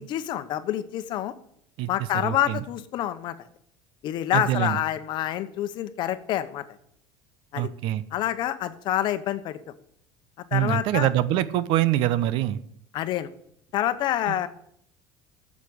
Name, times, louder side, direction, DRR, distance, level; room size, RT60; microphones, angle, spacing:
voice 1, 0.0-1.3 1.9-3.3 4.0-6.6 7.5-7.7 8.1-9.6 10.5-11.1 12.9-13.3 13.7-14.5, left 12 dB, 55° left, 12 dB, 0.9 m, -27 dB
voice 2, 2.2-2.6 4.3-4.8 7.6-8.0 10.5-12.6 14.3-14.4, right 13 dB, 65° right, 15 dB, 0.7 m, -24 dB
8.4 x 7.4 x 8.1 m, 0.71 s
supercardioid pair, 115°, 9 cm